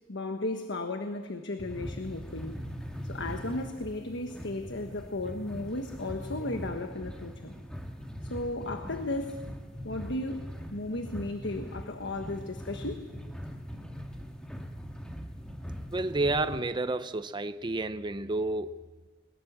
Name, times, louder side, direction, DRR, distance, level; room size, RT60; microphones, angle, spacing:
voice 1, 0.1-2.6 3.0-7.5 8.2-9.4 9.8-10.4 10.7-13.0, left 2 dB, 65° left, 1.3 m, -35 dB
sound 1, 1.6-16.6, equal, 5° left, 1.8 m, -41 dB
voice 2, 15.9-18.8, right 2 dB, 25° right, 0.6 m, -30 dB
22.5 x 20.5 x 7.4 m
head